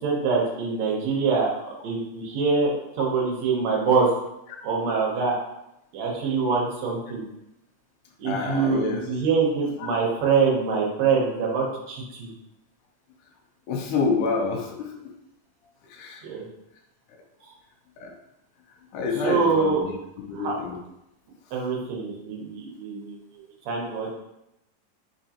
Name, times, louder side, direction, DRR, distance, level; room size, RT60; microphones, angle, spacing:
voice 1, 0.0-4.1 4.6-5.4 5.9-7.2 8.2-12.3 16.2-16.4 19.2-19.8 20.4-20.5 21.5-23.2 23.7-24.1, right 5 dB, 70° right, -2 dB, 1.7 m, -24 dB
voice 2, 8.3-9.1 9.8-9.9 13.7-14.9 15.8-16.2 18.0-18.2 18.9-20.0 20.3-20.8, left 4 dB, 80° left, 2 dB, 2.1 m, -28 dB
4.9 x 3.6 x 2.8 m, 0.87 s
omnidirectional pair, 4.0 m